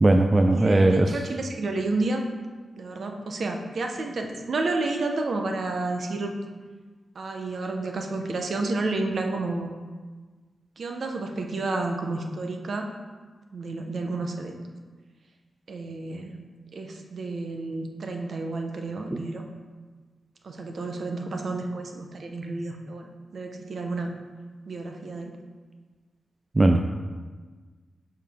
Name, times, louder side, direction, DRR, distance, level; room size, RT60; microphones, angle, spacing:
voice 1, 0.0-1.1 19.1-19.2 26.6-26.8, right 2 dB, 25° right, 5 dB, 0.3 m, -19 dB
voice 2, 0.5-2.2 2.8-6.3 7.1-9.7 10.8-12.9 13.5-14.6 15.7-16.3 16.7-19.4 20.4-24.1 24.7-25.3, right 2 dB, 55° right, 4 dB, 0.7 m, -30 dB
6.6 x 5.6 x 3.6 m, 1.4 s
wide cardioid pair, 135°, 0 cm